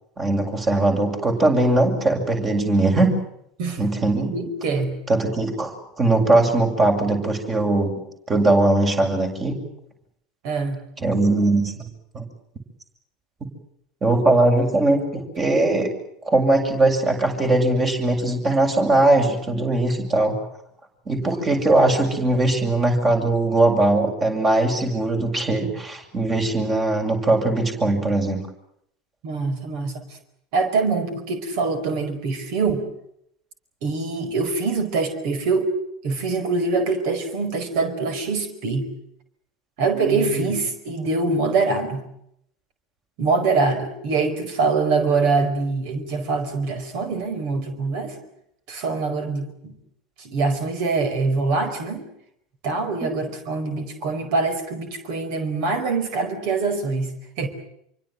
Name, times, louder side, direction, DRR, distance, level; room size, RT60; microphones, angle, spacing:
voice 1, 0.2-3.2 3.8-4.3 5.1-7.9 8.3-9.6 11.0-11.9 12.1-12.2 14.0-15.9 16.2-20.4 21.1-28.4 40.0-40.4 53.0-53.1, right 2 dB, 25° right, 4 dB, 7.5 m, -20 dB
voice 2, 4.1-5.0 10.4-10.8 29.2-30.0 30.5-32.9 33.8-35.7 36.0-38.9 39.8-42.0 43.2-48.1 48.7-49.7 50.2-52.0 52.6-57.5, right 4 dB, 55° right, 9 dB, 4.7 m, -24 dB
27.0 x 24.5 x 7.8 m, 0.75 s
figure-of-eight pair, 75°, 0 cm